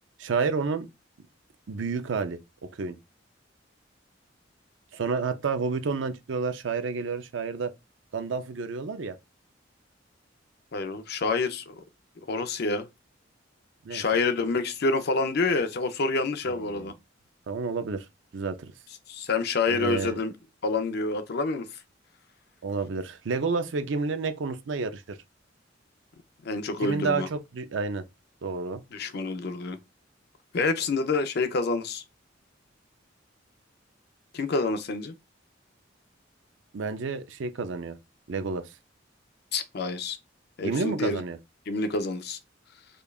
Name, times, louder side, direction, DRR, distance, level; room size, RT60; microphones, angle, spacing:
voice 1, 0.2-0.9 1.7-2.4 2.8-3.0 4.9-7.7 8.1-9.2 13.8-14.0 16.7-16.9 17.5-18.1 18.3-18.7 19.7-20.2 22.6-25.2 26.8-28.0 28.4-28.8 36.7-38.0 38.3-38.7 40.6-41.4, right 4 dB, 70° right, 0.5 m, -30 dB
voice 2, 10.7-11.8 12.3-12.9 13.9-16.9 19.1-20.3 20.6-21.7 26.4-27.3 28.9-29.8 30.5-32.0 34.3-35.1 39.5-40.2 40.6-41.2 41.7-42.4, left 3 dB, 55° left, 0.5 m, -27 dB
5.1 x 2.3 x 2.3 m
head